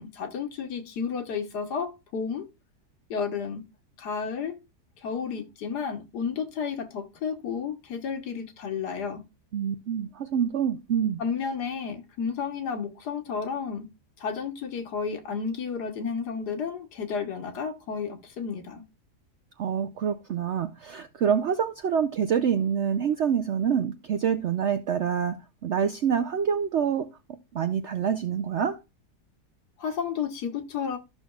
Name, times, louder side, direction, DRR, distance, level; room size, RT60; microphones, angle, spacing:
voice 1, 0.0-2.5 3.1-3.6 4.0-4.6 5.0-9.2 11.2-13.9 14.2-18.8 29.8-31.0, left 6 dB, 75° left, 1.7 m, -32 dB
voice 2, 9.5-11.2 19.6-27.1 27.5-28.8, right 8 dB, 70° right, 0.6 m, -26 dB
13.0 x 6.2 x 2.3 m
omnidirectional pair, 1.8 m